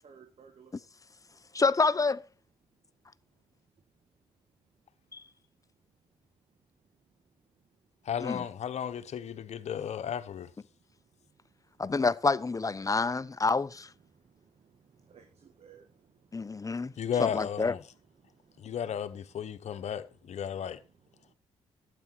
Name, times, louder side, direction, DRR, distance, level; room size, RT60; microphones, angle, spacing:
voice 1, 0.0-0.7 7.1-7.2 11.0-11.8 14.0-17.1 18.1-18.8 19.4-19.9 20.8-21.3, right 6 dB, 60° right, 2.0 m, -60 dB
voice 2, 1.5-2.2 5.1-5.2 8.2-8.4 11.8-13.9 16.3-16.9 17.2-17.7, left 4 dB, 25° left, 0.8 m, -28 dB
voice 3, 8.0-10.5 11.9-12.0 17.0-17.8 18.6-20.8, left 8 dB, 65° left, 1.1 m, -34 dB
12.0 x 8.6 x 4.6 m
hypercardioid pair, 45°, 12 cm